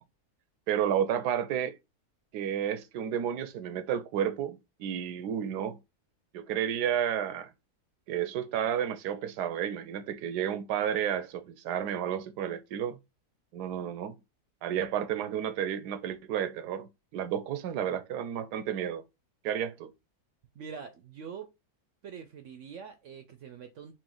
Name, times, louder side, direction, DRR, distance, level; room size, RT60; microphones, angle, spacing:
voice 1, 0.7-1.8 2.3-5.8 6.3-7.5 8.1-13.0 13.5-14.2 14.6-19.0 19.4-19.9, right 9 dB, 85° right, 1.2 m, -31 dB
voice 2, 20.6-21.5 22.0-23.9, right 6 dB, 65° right, 0.7 m, -44 dB
4.3 x 2.5 x 3.7 m
omnidirectional pair, 1.7 m